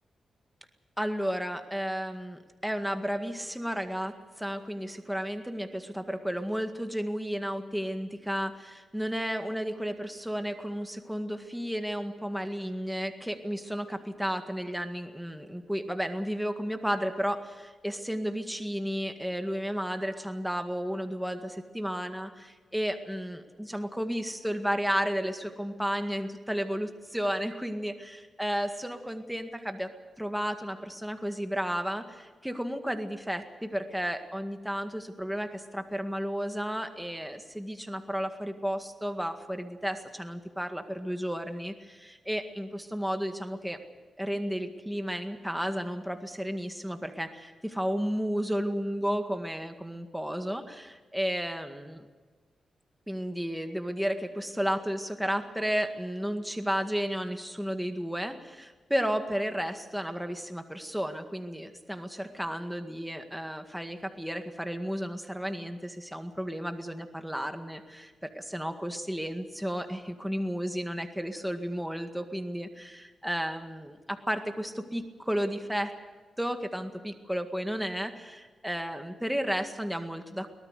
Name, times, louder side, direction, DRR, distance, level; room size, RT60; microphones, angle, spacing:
voice 1, 1.0-29.9 30.2-43.8 44.2-52.0 53.1-75.9 76.4-80.5, equal, 5° right, 6 dB, 1.9 m, -33 dB
23.5 x 18.5 x 6.7 m, 1.4 s
cardioid pair, 90°, 0 cm